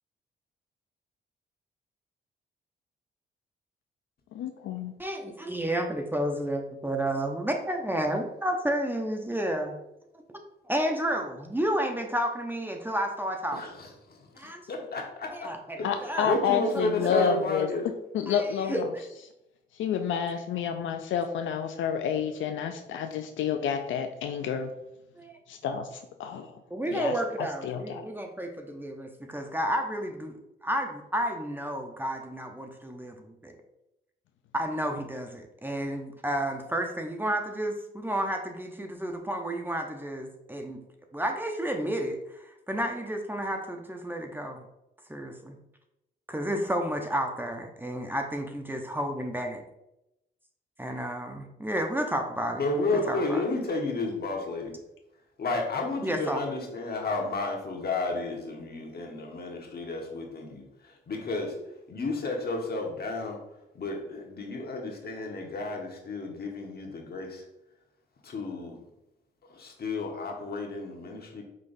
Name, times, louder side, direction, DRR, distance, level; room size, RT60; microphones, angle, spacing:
voice 1, 4.3-4.9 15.8-17.7 18.1-18.9 19.7-24.7 25.5-26.5 26.9-28.1, left 7 dB, 75° left, 6 dB, 0.4 m, -29 dB
voice 2, 5.0-9.7 10.1-10.2 10.6-13.6 14.4-14.6 15.3-16.3 18.3-18.8 25.2-25.4 26.7-33.5 34.5-40.8 41.1-44.6 45.1-45.6 46.3-49.6 50.8-52.6 52.9-53.4 56.0-56.4, right 1 dB, 10° right, 3 dB, 0.7 m, -31 dB
voice 3, 13.5-15.5 15.8-17.8 52.5-54.7 55.4-61.6 61.9-63.4 63.7-67.4 68.2-68.8 69.5-71.4, left 2 dB, 50° left, 1 dB, 1.2 m, -32 dB
5.0 x 3.7 x 2.6 m, 0.87 s
supercardioid pair, 60°, 20 cm